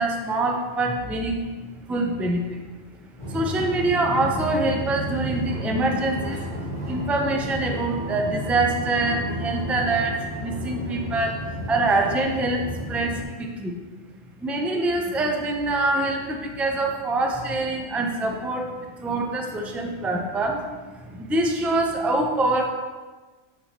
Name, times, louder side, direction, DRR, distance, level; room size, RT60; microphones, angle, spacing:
voice 1, 0.0-1.4 1.9-2.6 3.3-13.8 14.4-22.7, right 2 dB, ahead, 2 dB, 0.3 m, -25 dB
sound 1, 3.2-13.2, right 1 dB, 35° right, 2.2 m, -32 dB
7.3 x 6.7 x 2.9 m, 1.3 s
omnidirectional pair, 1.2 m